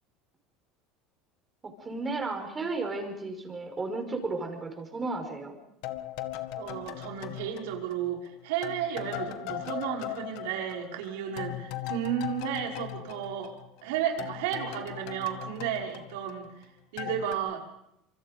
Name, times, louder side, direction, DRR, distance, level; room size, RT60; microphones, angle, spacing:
voice 1, 1.8-5.6, right 3 dB, 20° right, 5 dB, 5.8 m, -33 dB
sound 1, 5.8-8.3 8.6-13.9 14.2-16.6 17.0-17.3, left 13 dB, 70° left, 1.8 m, -39 dB
voice 2, 6.5-13.5 13.8-16.5 16.9-17.6, right 9 dB, 85° right, 1 dB, 5.4 m, -33 dB
26.5 x 24.5 x 5.3 m, 0.79 s
supercardioid pair, 120°, 0 cm